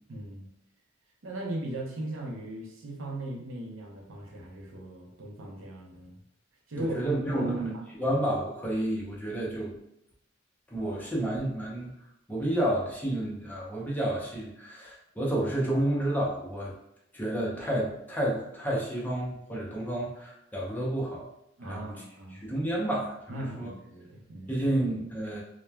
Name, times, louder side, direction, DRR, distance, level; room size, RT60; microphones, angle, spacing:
voice 1, 0.1-0.5 1.2-6.2 6.7-8.2 21.6-22.5 23.3-24.7, right 1 dB, 90° right, 0 dB, 0.6 m, -38 dB
voice 2, 6.8-9.8 10.7-11.9 12.3-16.7 17.1-21.3 21.6-21.9 22.3-23.7 24.5-25.4, right 1 dB, 10° left, -5 dB, 0.6 m, -30 dB
3.0 x 2.1 x 2.2 m, 0.80 s
head